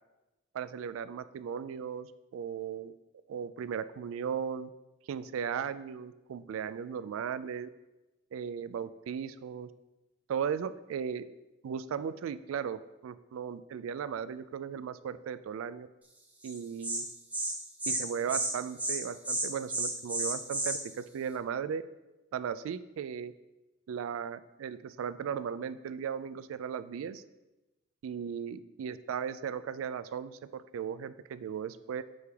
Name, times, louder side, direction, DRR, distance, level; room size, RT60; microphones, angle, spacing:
voice 1, 0.5-2.9 3.3-4.7 5.1-7.7 8.3-9.7 10.3-11.3 11.6-15.9 16.4-17.1 17.9-21.8 22.3-23.3 23.9-27.2 28.0-32.0, right 7 dB, 85° right, 15 dB, 0.3 m, -36 dB
Insect, 16.4-16.6 16.8-17.0 17.3-17.5 17.8-18.0 18.3-18.5 18.8-19.0 19.2-20.8, right 2 dB, 10° right, 0.6 m, -31 dB
9.3 x 3.3 x 3.5 m, 1.0 s
head